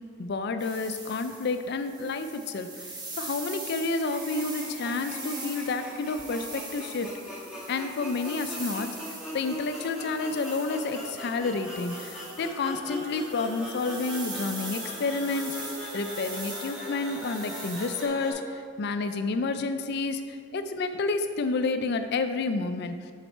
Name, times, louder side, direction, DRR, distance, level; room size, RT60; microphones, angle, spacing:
voice 1, 0.2-2.9 3.2-7.1 7.7-8.9 9.3-22.9, left 3 dB, 55° left, 9 dB, 0.4 m, -30 dB
sound 1, 0.6-18.1, right 2 dB, 20° right, 0.9 m, -42 dB
sound 2, 4.0-18.3, equal, 5° right, 1.4 m, -40 dB
7.0 x 4.0 x 4.5 m, 2.1 s
head